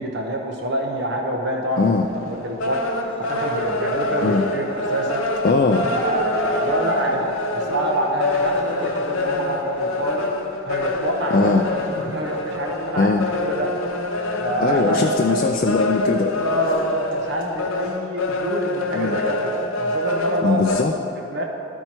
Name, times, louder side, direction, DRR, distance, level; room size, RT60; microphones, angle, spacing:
voice 1, 0.0-1.9 2.2-5.2 5.9-10.3 10.6-11.8 12.1-13.7 14.4-15.0 15.3-15.4 16.2-20.6 21.3-21.4, right 1 dB, 50° right, 0 dB, 0.8 m, -26 dB
sound 1, 2.0-2.1 2.4-20.8, left 2 dB, 70° left, 0.7 m, -26 dB
sound 2, 3.0-5.2 5.7-7.7 8.1-12.5, equal, 25° right, 1.1 m, -40 dB
voice 2, 5.4-5.9 11.3-11.6 13.0-13.2 14.6-16.3 18.9-19.2 20.4-20.9, left 3 dB, 40° left, 3 dB, 0.3 m, -20 dB
13.0 x 4.5 x 4.4 m, 2.9 s
head